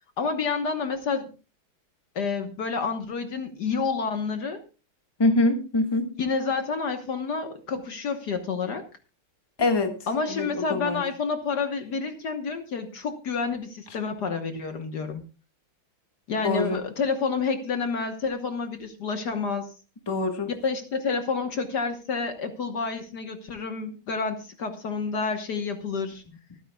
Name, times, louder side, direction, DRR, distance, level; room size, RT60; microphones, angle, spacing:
voice 1, 0.2-1.3 2.1-4.6 6.2-8.8 10.1-15.2 16.3-19.7 20.6-26.2, left 5 dB, 55° left, 6 dB, 1.7 m, -29 dB
voice 2, 5.2-6.1 9.6-10.0 10.3-11.0 16.4-16.8 20.1-20.5, left 2 dB, 15° left, 4 dB, 1.4 m, -24 dB
25.0 x 9.4 x 2.3 m, 0.33 s
omnidirectional pair, 2.2 m